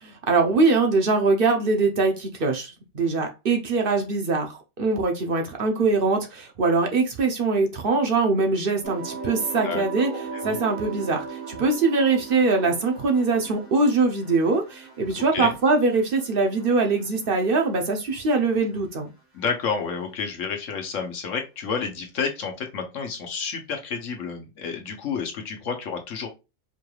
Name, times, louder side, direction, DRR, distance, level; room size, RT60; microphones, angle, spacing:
voice 1, 0.0-10.1 10.4-19.1, right 3 dB, 50° right, 3 dB, 0.8 m, -22 dB
sound 1, 8.8-18.0 18.3-18.9, right 5 dB, 85° right, 1.9 m, -39 dB
voice 2, 9.6-10.6 15.1-15.5 19.3-26.3, left 5 dB, 85° left, 3 dB, 1.3 m, -30 dB
4.9 x 3.2 x 2.3 m, 0.27 s
omnidirectional pair, 1.3 m